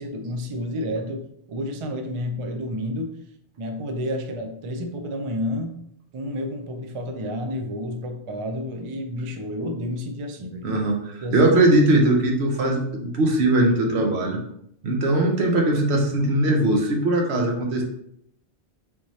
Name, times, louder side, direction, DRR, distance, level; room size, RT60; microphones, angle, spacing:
voice 1, 0.0-3.2 3.6-5.8 6.1-10.9 11.2-11.5, left 1 dB, 55° right, 4 dB, 0.3 m, -30 dB
voice 2, 10.6-14.4 14.8-17.8, right 1 dB, 75° right, 1 dB, 1.0 m, -20 dB
3.5 x 3.0 x 2.7 m, 0.72 s
omnidirectional pair, 1.1 m